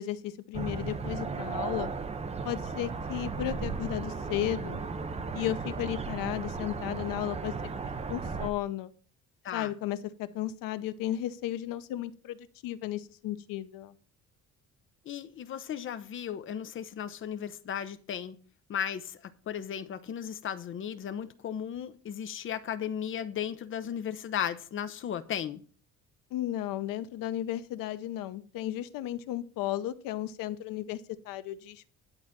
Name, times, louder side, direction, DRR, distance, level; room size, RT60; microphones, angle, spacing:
voice 1, 0.0-1.9 2.4-4.8 5.3-7.5 8.1-8.9 9.5-13.9 26.3-31.9, left 13 dB, 75° left, 0.9 m, -34 dB
sound 1, 0.5-8.5, right 4 dB, 20° right, 0.7 m, -35 dB
voice 2, 15.1-18.4 18.7-25.6, left 9 dB, 40° left, 0.8 m, -35 dB
11.0 x 4.0 x 7.3 m
cardioid pair, 160°, 33 cm